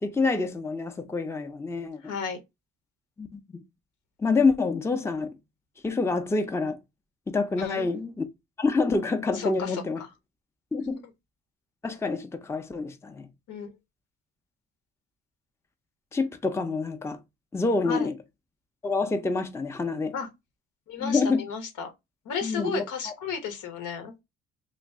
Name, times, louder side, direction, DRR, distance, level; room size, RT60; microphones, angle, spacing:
voice 1, 0.0-2.0 3.2-3.6 4.2-5.3 5.8-6.8 7.3-8.3 8.6-10.0 10.7-11.1 11.8-13.3 16.1-17.2 17.5-18.2 18.8-20.1 21.0-21.4 22.4-23.1, left 3 dB, 10° left, 0.5 m, -27 dB
voice 2, 2.0-2.4 7.6-7.9 9.3-9.8 13.5-13.7 17.8-18.1 20.1-20.3 20.9-21.9 22.2-24.1, left 6 dB, 80° left, 1.1 m, -33 dB
3.0 x 2.5 x 3.4 m
cardioid pair, 90°, 30 cm